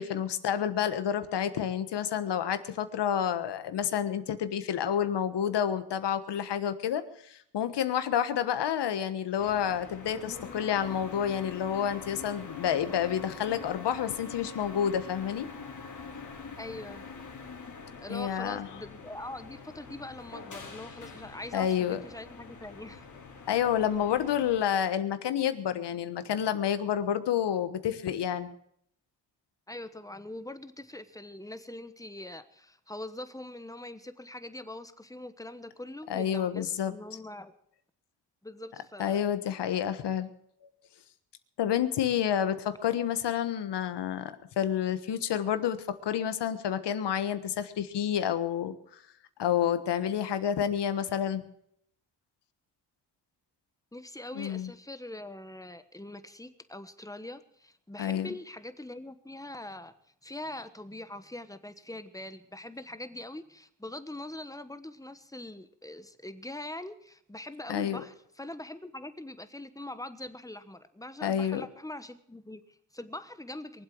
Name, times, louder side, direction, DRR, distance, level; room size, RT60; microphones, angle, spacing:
voice 1, 0.0-15.5 18.1-18.7 21.5-22.0 23.5-28.5 36.1-37.0 39.0-40.3 41.6-48.7 49.4-51.4 54.3-54.7 58.0-58.3 67.7-68.0 71.2-71.7, left 9 dB, 75° left, 11 dB, 1.4 m, -29 dB
sound 1, 9.4-24.6, left 4 dB, 45° left, 3.0 m, -45 dB
voice 2, 16.6-17.1 18.0-23.1 29.7-37.5 38.4-39.2 53.9-59.9 60.2-73.8, left 1 dB, 10° left, 11 dB, 1.2 m, -43 dB
23.0 x 8.0 x 6.2 m, 0.69 s
cardioid pair, 85°, 42 cm